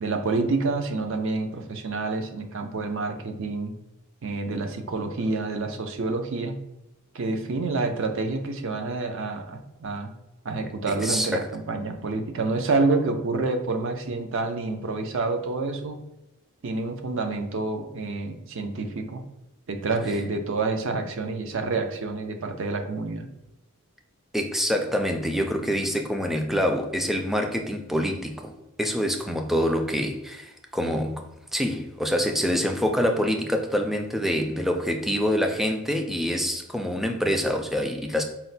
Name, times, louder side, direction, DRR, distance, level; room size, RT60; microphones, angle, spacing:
voice 1, 0.0-3.7 4.2-6.6 7.1-10.1 10.4-16.0 16.6-19.2 19.7-23.3, right 3 dB, 60° right, 0.5 m, -28 dB
voice 2, 10.9-11.5 24.3-28.5 28.8-31.3 31.5-38.2, equal, ahead, 0.3 m, -26 dB
4.2 x 2.1 x 4.0 m
head